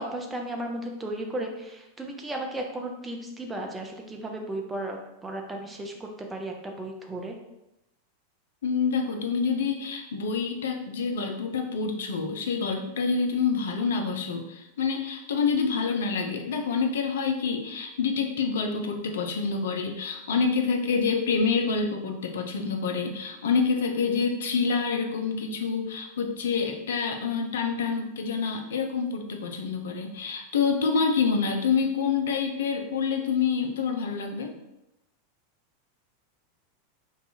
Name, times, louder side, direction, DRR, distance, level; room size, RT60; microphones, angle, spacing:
voice 1, 0.0-7.4, right 1 dB, 10° right, 1 dB, 0.5 m, -35 dB
voice 2, 8.6-34.5, left 5 dB, 60° left, 3 dB, 0.4 m, -27 dB
2.6 x 2.3 x 4.1 m, 0.93 s
figure-of-eight pair, 90°, 0 cm